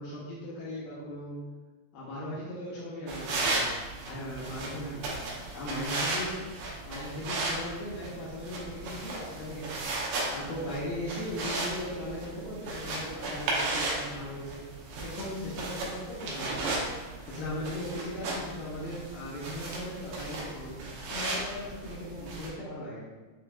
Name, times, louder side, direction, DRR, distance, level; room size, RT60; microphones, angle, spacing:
voice 1, 0.0-1.4 1.9-3.7 4.0-5.2 5.5-6.4 6.8-14.6 15.0-16.9 17.2-20.8 21.1-23.0, left 1 dB, 85° left, -7 dB, 2.6 m, -38 dB
sound 1, 3.1-22.5, right 2 dB, 75° right, 2.4 m, -35 dB
7.6 x 2.6 x 2.3 m, 1.3 s
omnidirectional pair, 4.5 m